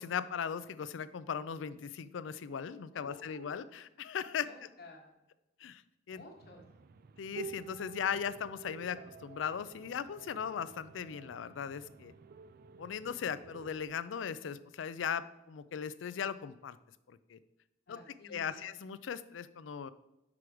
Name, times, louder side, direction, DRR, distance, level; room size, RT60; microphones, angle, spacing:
voice 1, 0.0-4.5 5.6-5.8 6.1-6.2 7.2-12.1 12.8-16.8 17.1-17.4 17.9-18.0 18.2-19.9, left 7 dB, 85° left, 15 dB, 0.4 m, -38 dB
voice 2, 2.9-3.8 4.4-5.1 6.1-6.6 17.9-18.7, left 2 dB, 55° left, 0 dB, 1.5 m, -53 dB
sound 1, 6.4-13.8, right 6 dB, 55° right, 0.4 m, -50 dB
6.0 x 4.9 x 4.7 m, 0.95 s
head